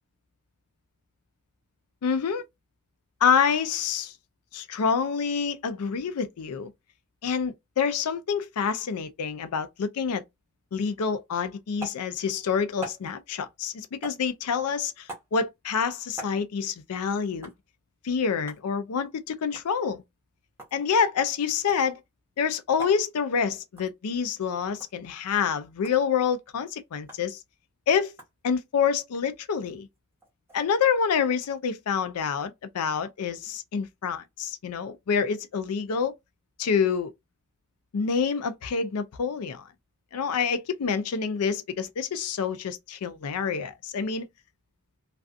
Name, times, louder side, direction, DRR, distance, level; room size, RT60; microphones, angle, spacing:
voice 1, 2.0-2.4 3.2-4.1 4.5-6.7 7.2-10.2 10.7-17.5 18.0-20.0 20.7-22.0 22.4-27.4 27.9-28.1 28.4-29.9 30.5-36.1 36.6-37.1 37.9-39.7 40.1-44.3, left 6 dB, 80° left, 0.4 m, -27 dB
sound 1, 11.8-12.0 12.8-13.1 14.0-14.3 15.1-15.3 16.2-16.4 17.4-17.6 18.5-18.7 19.5-19.7 20.4-20.8 21.7-21.9 22.8-23.0 23.8-23.9 24.8-24.9 25.8-26.0 27.1-27.2 28.2-28.3 29.9-30.7, right 1 dB, 10° right, 1.0 m, -41 dB
2.4 x 2.3 x 2.5 m
head